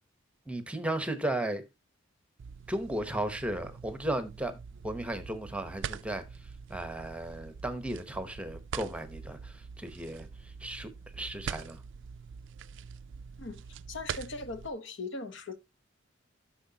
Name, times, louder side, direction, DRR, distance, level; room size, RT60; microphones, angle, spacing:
voice 1, 0.5-1.6 2.7-4.6 4.8-11.8, right 1 dB, 5° right, 0.9 m, -35 dB
sound 1, 2.4-14.7, right 7 dB, 60° right, 0.4 m, -44 dB
voice 2, 13.9-15.6, left 3 dB, 60° left, 1.0 m, -39 dB
12.0 x 6.0 x 2.8 m
head